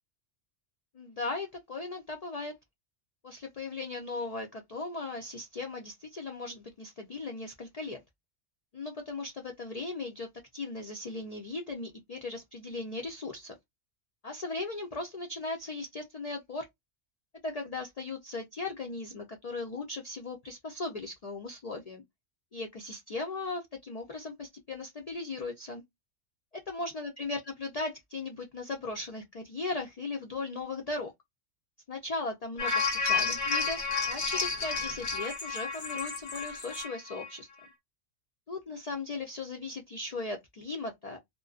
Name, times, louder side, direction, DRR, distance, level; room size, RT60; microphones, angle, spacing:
voice 1, 0.9-2.6 3.2-8.0 8.7-10.3 10.5-13.5 14.2-16.7 17.4-22.0 22.5-25.8 26.7-31.1 31.9-33.8 34.1-37.5 38.5-41.2, left 3 dB, 85° left, 0.3 m, -37 dB
sound 1, 32.6-37.3 37.6-37.7, left 4 dB, 55° left, 1.1 m, -31 dB
2.5 x 2.2 x 2.3 m
omnidirectional pair, 1.3 m